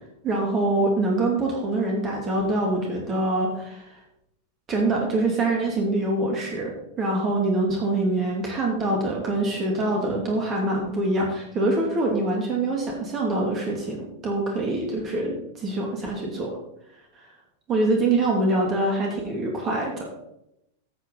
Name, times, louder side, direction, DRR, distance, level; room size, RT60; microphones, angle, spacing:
voice 1, 0.2-3.9 4.7-6.7 7.0-16.5 17.7-20.1, right 2 dB, 30° right, -1 dB, 2.7 m, -24 dB
15.5 x 8.2 x 4.0 m, 0.80 s
figure-of-eight pair, 90°, 0 cm